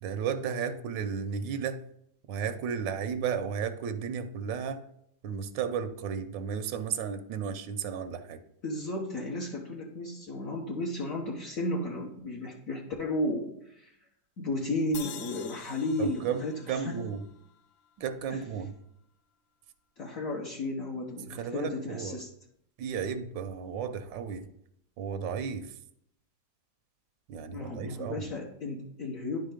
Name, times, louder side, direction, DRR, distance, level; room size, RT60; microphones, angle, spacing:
voice 1, 0.0-1.8 2.3-4.8 5.2-8.4 16.0-17.2 18.0-18.7 21.3-22.2 22.8-24.5 25.0-25.7 27.3-28.3, right 7 dB, 85° right, 1.4 m, -34 dB
voice 2, 8.6-13.9 14.4-16.9 18.3-18.4 20.0-22.3 27.5-29.5, left 1 dB, 55° left, 1.4 m, -34 dB
sound 1, 14.9-18.2, left 8 dB, 85° left, 0.6 m, -47 dB
10.5 x 4.5 x 5.0 m
omnidirectional pair, 1.9 m